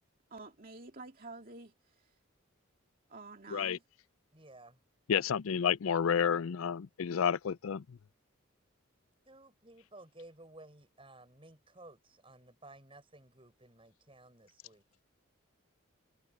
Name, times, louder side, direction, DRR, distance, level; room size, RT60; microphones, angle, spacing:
voice 1, 0.3-2.1 3.1-3.8, right 3 dB, 40° right, 2.4 m, -49 dB
voice 2, 4.3-4.8 9.3-14.8, right 2 dB, 25° right, 7.3 m, -55 dB
voice 3, 5.1-8.0, left 7 dB, 80° left, 0.4 m, -30 dB
head